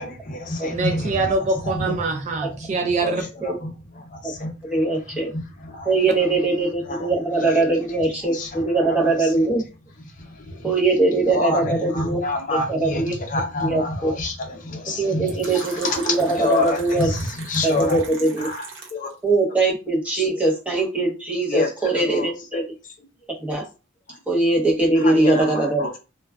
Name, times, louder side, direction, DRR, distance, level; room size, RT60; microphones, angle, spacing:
voice 1, 0.0-1.3 1.6-1.9 3.0-3.1 3.4-3.7 4.0-4.5 5.3-6.0 6.9-7.1 7.4-7.6 8.3-9.3 10.2-10.7 11.3-16.0 16.4-18.0 18.4-18.6 18.9-19.1 20.2-20.3 21.5-22.3 25.0-25.9, left 2 dB, 40° left, 0.6 m, -28 dB
voice 2, 0.7-3.2, right 3 dB, 35° right, 0.3 m, -24 dB
voice 3, 4.6-5.3 5.8-9.6 10.6-12.2 12.5-13.1 13.6-14.1 14.9-17.1 17.6-18.5 19.2-22.6 23.4-23.7 24.3-25.9, right 2 dB, 5° right, 0.7 m, -21 dB
Fill (with liquid), 15.3-19.1, right 4 dB, 65° right, 0.7 m, -38 dB
2.3 x 2.2 x 3.3 m
head